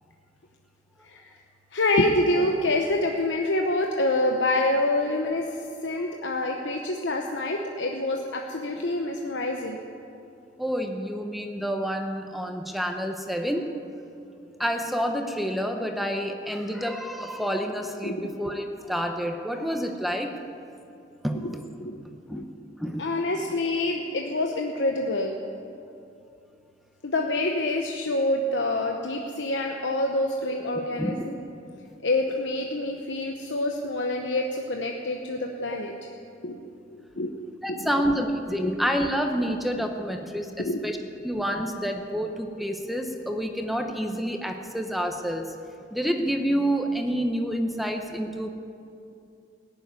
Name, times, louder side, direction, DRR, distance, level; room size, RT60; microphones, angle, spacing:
voice 1, 1.7-5.5 5.8-9.8 18.0-18.3 21.4-21.5 21.8-22.0 22.3-22.4 23.0-25.3 27.0-31.4 32.0-35.9 36.4-36.6 37.2-37.3 37.7-37.9 38.6-38.7 40.6-40.8, left 2 dB, 85° left, 2 dB, 0.9 m, -26 dB
voice 2, 10.6-13.7 14.6-20.4 21.2-21.7 22.3-22.5 22.8-23.1 31.0-31.2 37.6-41.0 41.2-45.4 45.9-48.5, equal, ahead, 4 dB, 0.8 m, -28 dB
17.5 x 7.3 x 9.4 m, 2.6 s
head